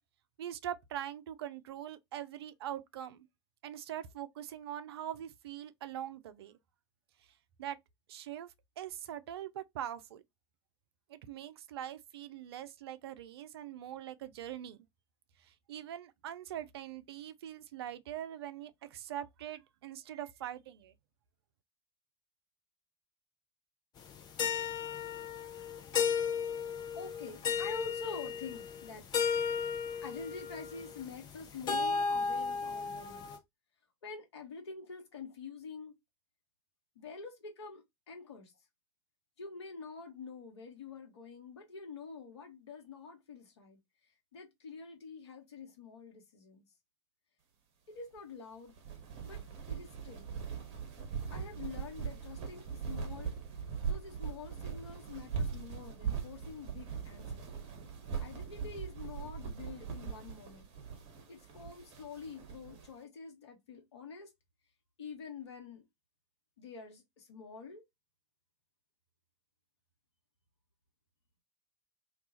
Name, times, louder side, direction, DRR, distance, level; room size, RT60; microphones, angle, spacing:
voice 1, 0.4-3.3 3.6-6.5 7.6-7.8 8.1-10.2 11.1-14.9 15.5-20.9, right 11 dB, 60° right, 0.4 m, -43 dB
sound 1, 24.1-33.4, left 6 dB, 25° left, 0.6 m, -34 dB
voice 2, 26.9-29.1 30.0-33.4 34.0-36.0 36.9-38.5 39.4-43.8 44.3-46.6 47.9-48.7 49.2-50.3 51.3-53.3 53.8-57.5 58.2-60.7 61.3-64.3 65.0-65.9 66.6-67.8, left 5 dB, 65° left, 0.9 m, -47 dB
sound 2, 48.7-62.9, right 6 dB, 40° right, 0.9 m, -40 dB
2.3 x 2.3 x 2.7 m
figure-of-eight pair, 85°, 15 cm